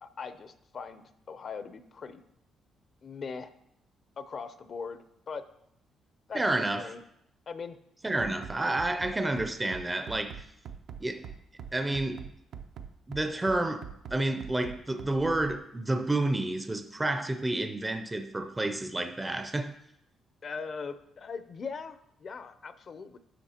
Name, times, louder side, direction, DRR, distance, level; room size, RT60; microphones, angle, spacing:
voice 1, 0.0-2.2 3.0-3.5 4.2-5.4 6.3-7.0 7.5-7.8 20.4-23.2, left 5 dB, 50° left, 0.6 m, -40 dB
voice 2, 6.3-6.9 8.0-10.5 11.0-11.3 11.7-12.3 13.1-13.8 14.1-19.7, right 2 dB, 15° right, 0.5 m, -30 dB
Bass drum, 8.2-15.6, right 7 dB, 70° right, 0.6 m, -43 dB
10.0 x 6.5 x 2.9 m
cardioid pair, 90°, 0 cm